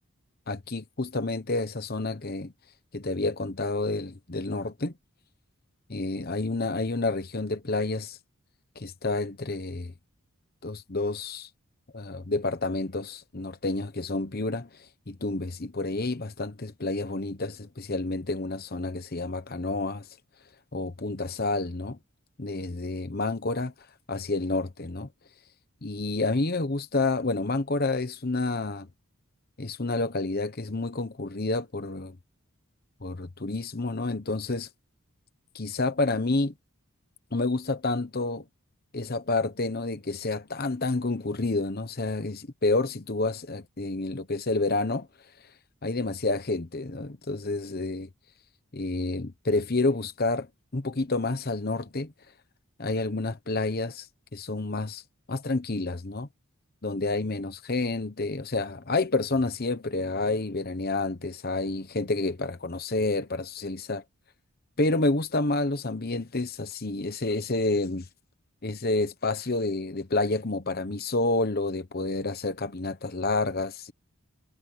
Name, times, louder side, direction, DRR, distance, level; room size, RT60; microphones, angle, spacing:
voice 1, 0.5-2.5 2.9-4.9 5.9-8.2 8.8-9.9 10.6-11.5 11.9-14.7 15.1-20.1 20.7-22.0 22.4-23.7 24.1-25.1 25.8-28.9 29.6-32.1 33.0-34.7 35.5-36.5 37.3-38.4 38.9-45.1 45.8-48.1 48.7-50.5 50.7-52.1 52.8-54.1 54.3-55.0 55.3-56.3 56.8-64.0 64.8-68.1 68.6-73.9, left 2 dB, 45° left, 1.0 m, -29 dB
head